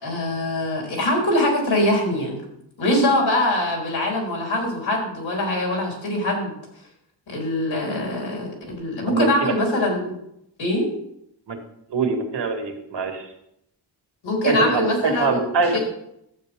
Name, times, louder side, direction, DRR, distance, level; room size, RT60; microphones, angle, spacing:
voice 1, 0.0-2.4 2.8-6.5 7.3-10.1 10.6-10.9 14.2-15.4 15.7-15.8, left 1 dB, 80° left, -2 dB, 4.3 m, -23 dB
voice 2, 9.1-9.5 11.5-11.6 11.9-13.3 14.4-15.8, right 4 dB, 65° right, 3 dB, 2.0 m, -23 dB
12.0 x 8.3 x 3.7 m, 0.76 s
wide cardioid pair, 90°, 44 cm